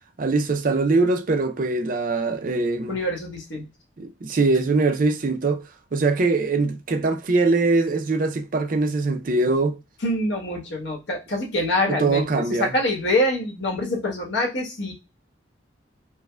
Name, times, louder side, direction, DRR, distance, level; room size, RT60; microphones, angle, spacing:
voice 1, 0.2-3.0 4.0-5.6 5.9-9.8 11.9-12.7, right 3 dB, 45° right, 0.5 m, -22 dB
voice 2, 2.9-3.6 10.0-14.9, left 1 dB, 70° left, 1.1 m, -25 dB
4.6 x 2.1 x 2.2 m
head